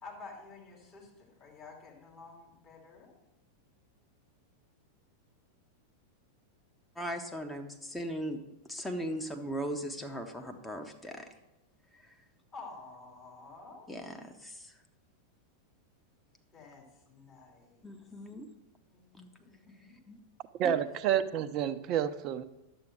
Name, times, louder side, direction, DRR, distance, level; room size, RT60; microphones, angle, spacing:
voice 1, 0.0-3.1 12.5-13.9 16.5-17.9 18.9-19.9, left 3 dB, 35° left, -3 dB, 3.1 m, -50 dB
voice 2, 7.0-8.4 8.7-11.2 13.9-14.7 17.8-18.5 19.1-19.3 19.7-19.8 20.1-20.2 20.6-20.7, equal, 5° left, 4 dB, 1.0 m, -38 dB
voice 3, 20.6-22.4, right 10 dB, 40° right, 12 dB, 0.6 m, -29 dB
10.5 x 7.8 x 4.5 m, 0.96 s
figure-of-eight pair, 90°, 0 cm